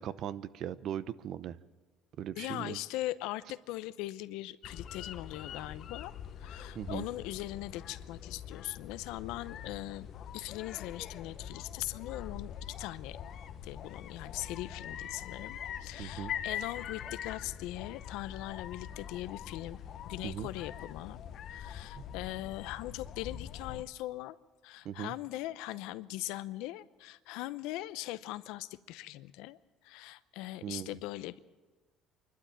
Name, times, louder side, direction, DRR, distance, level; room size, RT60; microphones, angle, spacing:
voice 1, 0.0-1.6 2.2-2.8 6.7-7.1 16.0-16.3 20.2-20.5 22.0-22.1 24.8-25.1 30.6-30.9, right 10 dB, 60° right, 16 dB, 0.8 m, -39 dB
voice 2, 2.4-6.1 6.4-10.1 10.3-13.2 13.6-19.8 20.0-21.2 21.5-24.4 24.6-29.6 29.8-31.4, left 16 dB, 80° left, 15 dB, 0.7 m, -40 dB
sound 1, 4.6-23.8, left 9 dB, 55° left, 0.9 m, -43 dB
26.0 x 12.0 x 8.7 m, 1.3 s
cardioid pair, 100°, 0 cm